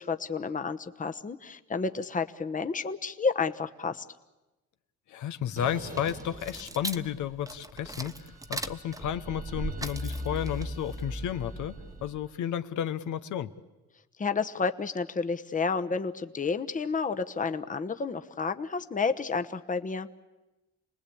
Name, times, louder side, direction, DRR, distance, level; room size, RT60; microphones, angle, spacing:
voice 1, 0.0-4.0 14.2-20.1, left 4 dB, 25° left, 9 dB, 1.1 m, -30 dB
voice 2, 5.1-13.5, left 10 dB, 75° left, 11 dB, 1.1 m, -32 dB
sound 1, 5.6-7.5 7.8-12.1, right 3 dB, 30° right, 1.6 m, -49 dB
sound 2, 5.7-12.3, right 1 dB, 10° right, 1.1 m, -38 dB
28.5 x 20.0 x 8.6 m, 1.1 s
cardioid pair, 90°, 30 cm